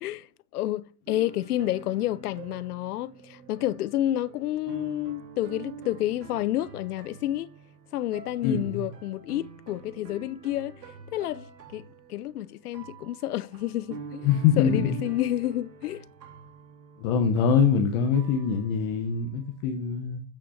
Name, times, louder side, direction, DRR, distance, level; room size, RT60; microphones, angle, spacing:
voice 1, 0.5-7.5 7.9-10.8 11.1-14.3 14.6-16.0, left 14 dB, 70° left, 0.6 m, -30 dB
sound 1, 1.1-19.6, right 5 dB, 85° right, 2.6 m, -46 dB
voice 2, 8.4-8.9 14.2-15.0 17.0-20.2, left 6 dB, 25° left, 0.8 m, -24 dB
8.8 x 5.7 x 5.6 m
supercardioid pair, 160°, 47 cm